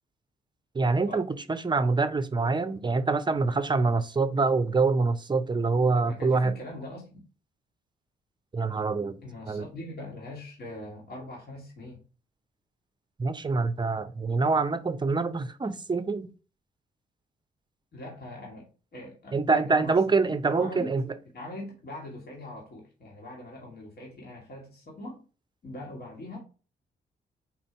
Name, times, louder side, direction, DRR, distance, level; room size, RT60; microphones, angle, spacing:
voice 1, 0.7-6.5 8.5-9.2 9.5-9.7 13.2-16.3 19.3-21.1, right 4 dB, 25° right, 0.6 m, -25 dB
voice 2, 6.0-7.2 9.2-12.0 17.9-20.0 20.5-21.0 21.3-25.2 25.6-26.4, left 1 dB, 55° left, 1.6 m, -42 dB
4.4 x 2.7 x 4.3 m
supercardioid pair, 50°, 20 cm